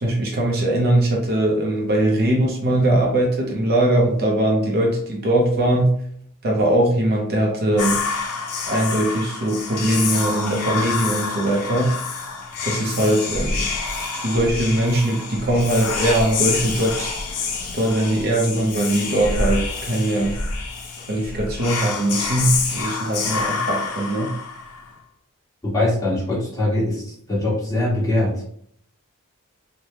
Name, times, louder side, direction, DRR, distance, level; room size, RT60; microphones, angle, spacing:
voice 1, 0.0-5.9 6.4-8.0 8.7-11.9 12.6-13.7 14.2-17.1 17.6-20.3 21.1-24.3, right 1 dB, 45° right, -1 dB, 0.6 m, -21 dB
Whispering, 7.8-24.9, left 4 dB, 75° left, 0.5 m, -27 dB
voice 2, 25.6-27.0 27.3-28.3, left 1 dB, 15° left, -7 dB, 1.2 m, -21 dB
3.2 x 2.1 x 2.7 m, 0.64 s
head